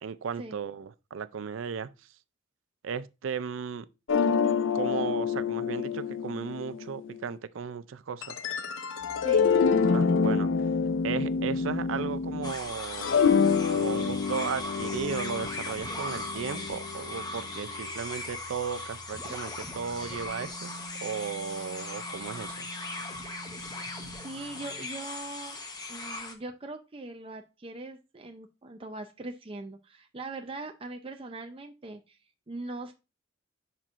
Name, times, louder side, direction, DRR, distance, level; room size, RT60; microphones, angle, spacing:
voice 1, 0.0-1.9 2.8-3.9 4.7-8.4 9.9-10.5 11.0-13.2 13.7-22.7, right 6 dB, 85° right, 0.4 m, -35 dB
sound 1, 4.1-7.2 8.2-12.5 12.8-17.0, left 5 dB, 75° left, 0.5 m, -27 dB
sound 2, 9.0-24.8, right 3 dB, 70° right, 1.0 m, -51 dB
voice 2, 9.2-9.7 24.1-25.6 25.9-32.2 32.5-32.9, right 2 dB, 30° right, 0.6 m, -41 dB
sound 3, 12.4-26.3, left 2 dB, 20° left, 1.0 m, -39 dB
10.5 x 4.4 x 2.5 m
head